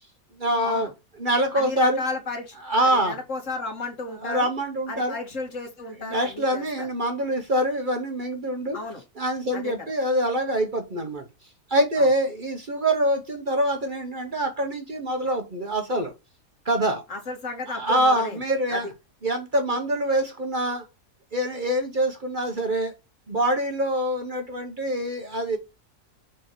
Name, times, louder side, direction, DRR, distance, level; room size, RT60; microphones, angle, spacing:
voice 1, 0.4-0.9 1.2-2.0 2.6-3.2 4.2-5.1 6.0-8.8 9.2-11.2 11.7-16.1 16.6-17.0 17.7-18.9 19.2-20.8 21.3-22.9 23.3-25.6, right 1 dB, 40° right, 1.1 m, -25 dB
voice 2, 1.5-2.6 2.8-4.5 4.9-6.9 8.7-9.0 9.5-9.7 12.0-12.1 17.1-18.4 18.7-18.9, left 3 dB, 65° left, 2.1 m, -33 dB
5.3 x 4.7 x 4.6 m
omnidirectional pair, 1.5 m